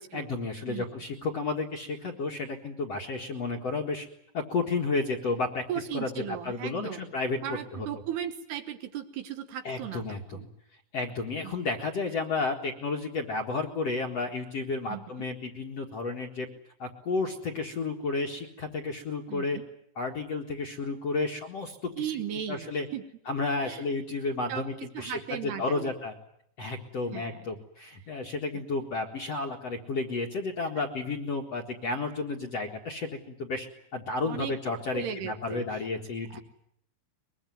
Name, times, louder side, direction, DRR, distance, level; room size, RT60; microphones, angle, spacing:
voice 1, 0.1-4.1 4.3-7.9 9.6-10.5 10.9-16.5 16.8-19.6 20.0-22.1 22.5-22.9 23.3-26.1 26.6-33.7 33.9-36.4, left 3 dB, 50° left, 1 dB, 1.9 m, -32 dB
voice 2, 5.7-7.1 7.4-10.4 11.4-11.5 14.9-15.0 19.3-19.7 22.0-22.7 22.9-23.0 23.6-23.8 24.5-24.7 24.9-25.9 27.1-27.4 34.2-34.5 34.9-35.8 36.3-36.4, right 10 dB, 70° right, 8 dB, 3.1 m, -36 dB
23.0 x 23.0 x 9.3 m, 0.73 s
omnidirectional pair, 5.4 m